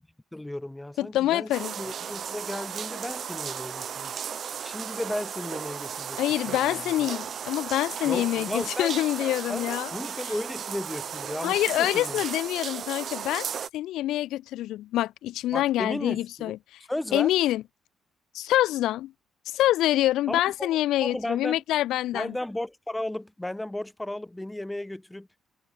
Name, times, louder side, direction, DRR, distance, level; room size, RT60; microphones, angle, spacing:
voice 1, 0.3-4.2 4.6-6.6 8.1-8.9 9.5-12.2 15.5-16.5 16.9-17.3 20.3-21.6 22.1-25.3, left 1 dB, 10° left, 4.5 m, -35 dB
voice 2, 1.0-1.7 6.2-9.9 11.4-13.5 13.7-16.6 17.1-17.6 18.3-19.1 19.5-22.3, left 14 dB, 85° left, 1.2 m, -26 dB
sound 1, 1.5-13.7, right 8 dB, 55° right, 1.0 m, -35 dB
cardioid pair, 90°, 0 cm